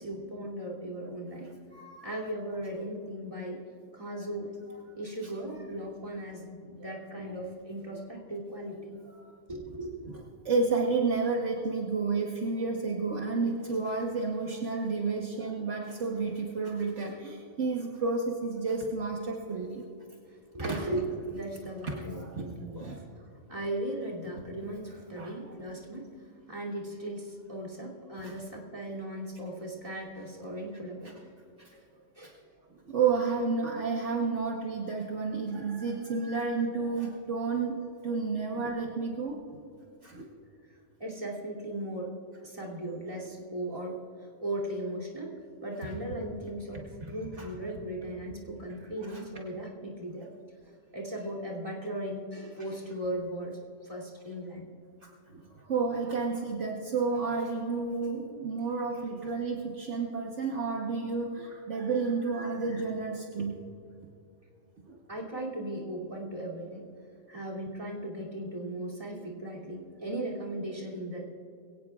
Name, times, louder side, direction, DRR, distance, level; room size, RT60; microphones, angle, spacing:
voice 1, 0.0-1.5 2.0-3.6 3.9-4.5 4.9-9.0 9.5-10.1 20.3-26.1 26.5-31.2 32.1-32.4 41.0-42.1 42.4-44.0 44.4-45.4 45.6-50.3 50.9-54.6 65.1-66.8 67.3-71.2, right 1 dB, 25° right, -1 dB, 2.8 m, -37 dB
voice 2, 1.7-2.1 9.2-9.3 10.4-19.8 20.6-20.9 21.8-22.4 22.8-23.0 25.2-25.3 28.2-28.3 31.6-31.8 32.2-32.3 32.9-39.4 40.0-40.3 47.4-47.5 49.0-49.2 55.3-63.6 64.9-65.0, right 4 dB, 60° right, -1 dB, 1.5 m, -31 dB
22.0 x 17.5 x 2.4 m, 2.5 s
omnidirectional pair, 1.4 m